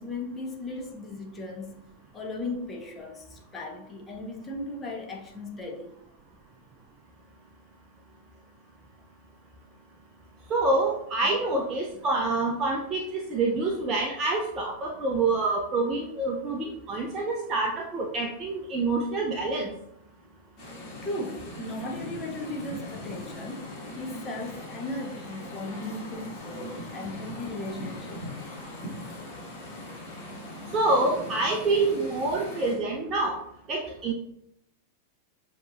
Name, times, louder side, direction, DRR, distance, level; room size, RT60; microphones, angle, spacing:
voice 1, 0.0-1.7 2.1-5.9 11.2-11.4 21.0-28.2, left 2 dB, 20° left, 1 dB, 0.9 m, -37 dB
voice 2, 10.5-19.7 30.7-33.4 33.7-34.1, right 2 dB, 25° right, 0 dB, 0.5 m, -27 dB
sound 1, 20.6-32.8, left 1 dB, 35° left, 1.7 m, -40 dB
6.9 x 2.9 x 2.5 m, 0.80 s
figure-of-eight pair, 90°, 0 cm